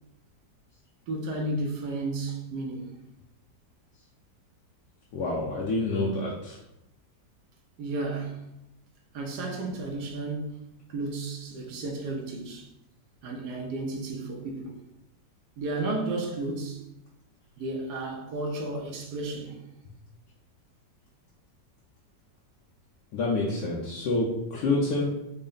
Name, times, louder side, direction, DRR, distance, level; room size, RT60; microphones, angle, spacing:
voice 1, 1.1-2.9 7.8-8.4 9.1-12.7 13.2-14.8 15.6-16.8 17.6-19.6, right 2 dB, 70° right, 1.1 m, -33 dB
voice 2, 5.1-6.6 23.1-25.1, left 2 dB, 75° left, 1.2 m, -27 dB
4.0 x 2.0 x 3.8 m
omnidirectional pair, 1.9 m